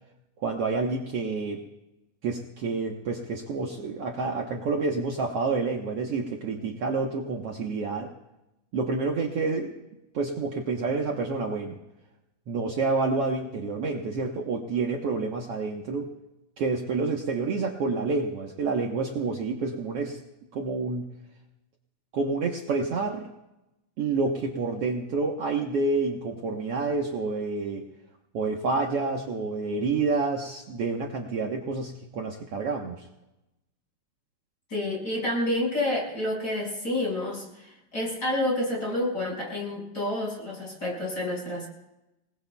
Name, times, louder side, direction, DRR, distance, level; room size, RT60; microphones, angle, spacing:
voice 1, 0.4-1.6 2.2-8.1 8.7-9.7 10.1-11.8 12.5-16.1 16.6-20.2 20.5-21.0 22.1-23.3 24.0-27.9 28.3-33.1, right 4 dB, 85° right, 1 dB, 1.3 m, -28 dB
voice 2, 34.7-41.7, left 1 dB, 25° left, -2 dB, 6.2 m, -29 dB
28.0 x 19.5 x 2.3 m, 0.94 s
omnidirectional pair, 4.5 m